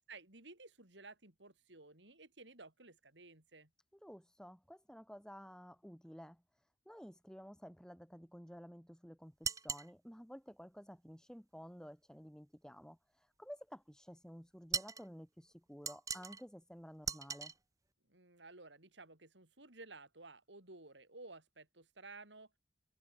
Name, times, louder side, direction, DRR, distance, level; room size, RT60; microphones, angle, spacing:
voice 1, 0.1-3.7 18.1-22.5, right 3 dB, 85° right, 6.0 m, -55 dB
voice 2, 4.0-6.4 6.9-17.5, equal, 5° left, 4.2 m, -53 dB
sound 1, 9.4-9.9 14.7-15.1 15.9-16.4 17.0-17.5, right 5 dB, 20° right, 2.2 m, -39 dB
head